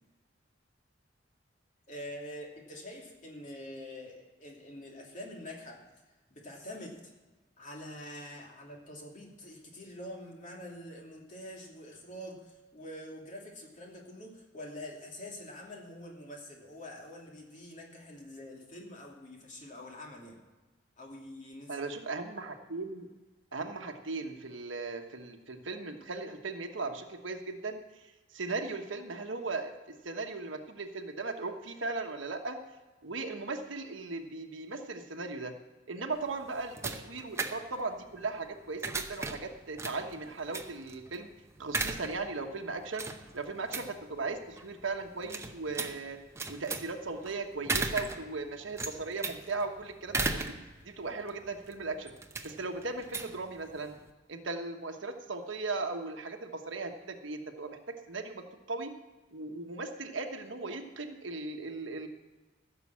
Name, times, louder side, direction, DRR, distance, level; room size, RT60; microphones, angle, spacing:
voice 1, 1.9-5.8 6.3-7.1 7.6-20.4 21.0-22.0, left 1 dB, 40° left, -1 dB, 2.8 m, -45 dB
voice 2, 21.7-23.1 23.5-28.0 28.3-29.7 30.0-32.6 33.0-35.5 35.9-41.3 41.6-43.1 43.3-46.2 46.5-50.5 50.8-52.1 52.4-54.0 54.3-57.8 58.1-58.4 58.7-58.9 59.3-62.1, right 3 dB, 75° right, 4 dB, 1.2 m, -37 dB
sound 1, 36.1-54.1, right 3 dB, 15° right, 0.8 m, -38 dB
15.5 x 6.9 x 7.3 m, 1.2 s
head